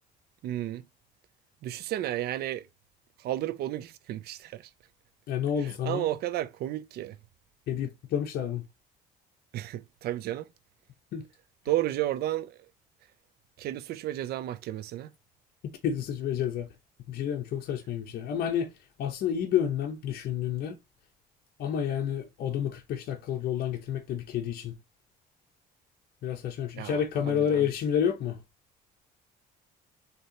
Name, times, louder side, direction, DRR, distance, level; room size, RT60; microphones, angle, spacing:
voice 1, 0.4-0.8 1.6-2.7 3.2-4.7 5.6-7.2 9.5-10.5 11.7-12.6 13.6-15.1 26.8-27.7, right 13 dB, 70° right, 0.5 m, -32 dB
voice 2, 5.3-6.1 7.7-8.6 11.1-11.2 15.8-16.7 17.1-18.7 19.0-20.8 21.6-24.7 26.2-28.4, left 9 dB, 65° left, 0.8 m, -29 dB
6.5 x 2.9 x 2.8 m
cardioid pair, 110°, 17 cm